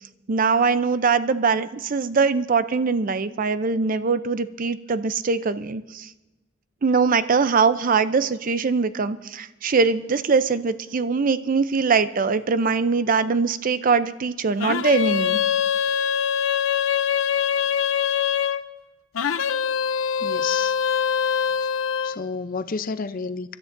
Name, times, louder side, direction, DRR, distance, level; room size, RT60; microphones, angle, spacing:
voice 1, 0.3-6.0 6.8-15.4, right 5 dB, 45° right, 13 dB, 0.5 m, -22 dB
sound 1, 14.6-18.6 19.1-22.2, left 8 dB, 85° left, 0.6 m, -23 dB
voice 2, 20.2-20.8 22.0-23.5, left 4 dB, 45° left, 11 dB, 0.6 m, -30 dB
25.5 x 12.5 x 2.6 m, 1.1 s
head